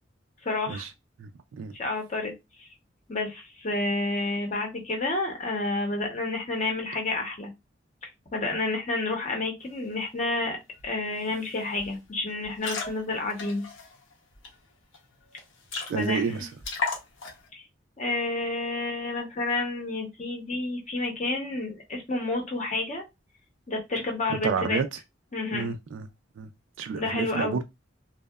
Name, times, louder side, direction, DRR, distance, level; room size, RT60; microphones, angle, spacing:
voice 1, 0.4-0.8 1.7-2.3 2.6-2.7 3.1-7.5 8.3-10.6 10.8-13.6 15.9-16.4 17.5-17.6 18.0-23.0 23.7-24.8 25.3-25.7 27.0-27.5, left 2 dB, 40° left, 0.7 m, -30 dB
voice 2, 1.2-1.7 15.9-16.5 24.4-25.0 25.5-26.1 26.4-26.5 26.8-27.6, right 5 dB, 80° right, 0.3 m, -30 dB
sound 1, 10.8-10.9 11.2-11.5 11.8-12.0 12.4-14.5 14.9-15.0 15.3-15.4 15.7-16.3 16.6-17.5, left 4 dB, 85° left, 0.7 m, -34 dB
2.7 x 2.0 x 2.2 m
head